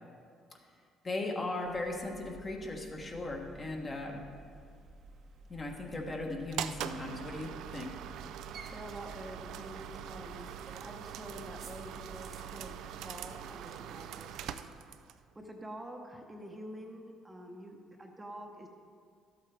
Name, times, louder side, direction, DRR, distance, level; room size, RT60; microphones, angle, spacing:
voice 1, 1.0-4.2 5.5-7.9, left 2 dB, 30° left, 1 dB, 1.3 m, -37 dB
sound 1, 1.6-13.8, right 2 dB, 55° right, 0.9 m, -53 dB
sound 2, 6.5-15.2, right 10 dB, 75° right, 0.4 m, -43 dB
voice 2, 8.7-10.5 10.8-12.7 13.0-14.6 15.3-18.7, right 1 dB, 15° right, 2 dB, 0.9 m, -47 dB
12.0 x 8.2 x 3.4 m, 2.2 s
cardioid pair, 95°, 0 cm